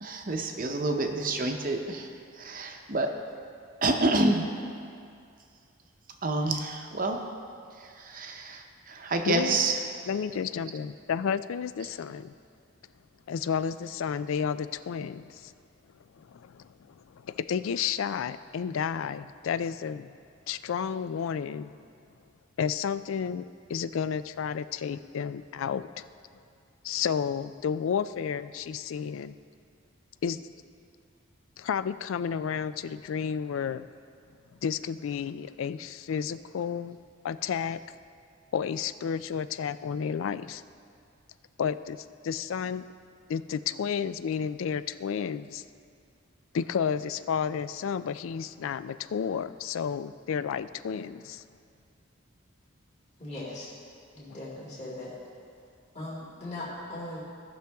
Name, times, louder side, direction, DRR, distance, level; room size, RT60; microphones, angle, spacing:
voice 1, 0.0-3.1 3.8-4.5 6.2-7.2 7.7-9.8 10.3-10.7 11.8-11.9, right 2 dB, 40° right, 4 dB, 0.8 m, -28 dB
voice 2, 9.3-9.6 10.1-12.3 13.3-15.5 16.2-16.6 17.0-20.1 20.5-21.8 22.6-26.0 26.8-29.4 30.2-30.4 31.6-33.9 34.6-37.0 37.2-37.8 38.5-40.6 41.6-42.9 43.3-45.6 46.5-51.4 54.3-54.4, left 7 dB, 70° left, 14 dB, 0.3 m, -31 dB
voice 3, 53.2-53.7 54.1-55.1 55.9-57.2, left 1 dB, 30° left, -8 dB, 2.2 m, -39 dB
17.0 x 6.1 x 3.5 m, 2.3 s
head